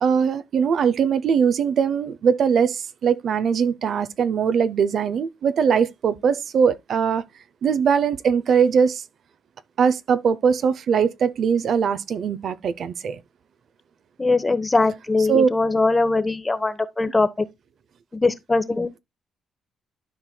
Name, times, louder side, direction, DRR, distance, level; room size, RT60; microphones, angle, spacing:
voice 1, 0.0-7.2 7.6-9.0 9.8-13.2 15.3-15.5, right 6 dB, 60° right, 0.6 m, -21 dB
voice 2, 14.2-17.3 18.1-18.9, left 3 dB, 20° left, 0.9 m, -21 dB
12.0 x 4.7 x 2.2 m
cardioid pair, 90°, 0 cm